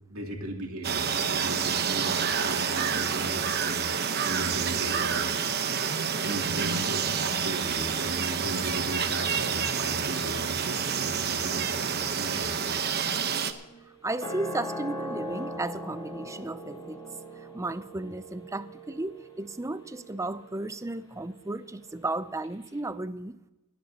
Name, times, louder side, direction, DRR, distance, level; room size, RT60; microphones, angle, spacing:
voice 1, 0.1-5.4 6.2-12.7, right 1 dB, 70° right, 2.9 m, -37 dB
sound 1, 0.8-13.5, right 7 dB, 50° right, 1.0 m, -28 dB
sound 2, 12.6-22.2 22.4-22.5, equal, 20° left, 2.5 m, -41 dB
voice 2, 14.0-17.0 17.4-23.5, right 2 dB, 15° right, 0.5 m, -34 dB
27.5 x 11.0 x 2.9 m
head